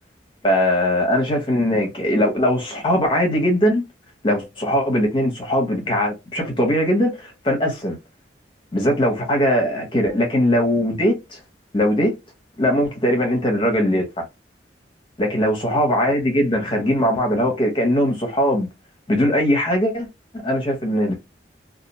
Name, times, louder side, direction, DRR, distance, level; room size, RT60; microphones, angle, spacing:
voice 1, 0.4-3.8 4.2-8.0 8.7-11.4 11.7-12.1 12.6-14.2 15.2-18.7 19.1-20.1 20.4-21.2, equal, 30° left, 0.7 m, -20 dB
2.4 x 2.1 x 2.7 m
head